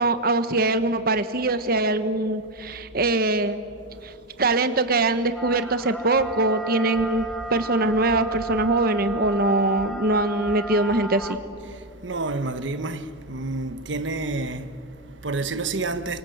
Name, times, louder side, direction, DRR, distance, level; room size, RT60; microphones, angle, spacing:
voice 1, 0.0-3.6 4.0-4.1 4.4-11.4, right 2 dB, 55° right, 1.1 m, -22 dB
voice 2, 2.6-3.0 3.8-4.4 11.6-16.2, right 3 dB, 85° right, 1.2 m, -30 dB
sound 1, 5.3-11.4, right 2 dB, ahead, 1.2 m, -34 dB
29.0 x 25.0 x 8.0 m
head